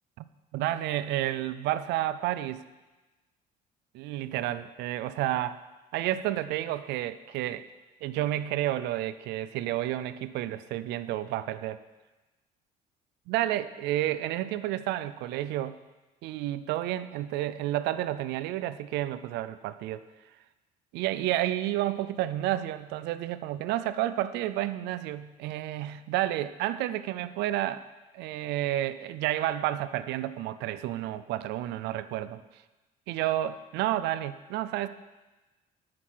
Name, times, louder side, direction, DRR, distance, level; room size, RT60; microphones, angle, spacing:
voice 1, 0.5-2.6 3.9-5.6 5.9-7.6 8.0-11.8 13.3-15.8 16.2-20.0 20.9-27.9 28.1-32.4 33.1-34.9, right 13 dB, 85° right, 13 dB, 0.4 m, -30 dB
7.6 x 6.3 x 5.8 m, 1.1 s
cardioid pair, 110°, 17 cm